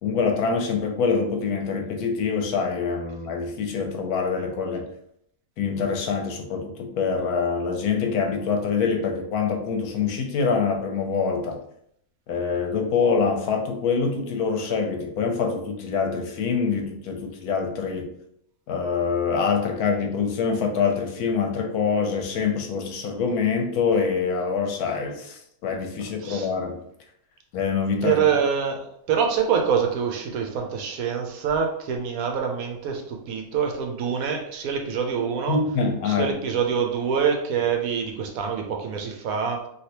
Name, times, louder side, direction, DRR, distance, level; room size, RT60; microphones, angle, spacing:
voice 1, 0.0-4.9 5.6-11.6 12.3-18.1 18.7-26.8 27.5-28.2 35.5-36.3, left 5 dB, 80° left, 3 dB, 1.1 m, -25 dB
voice 2, 28.0-35.6 36.0-39.6, right 7 dB, 70° right, 2 dB, 1.0 m, -25 dB
3.2 x 2.7 x 2.8 m, 0.72 s
omnidirectional pair, 1.6 m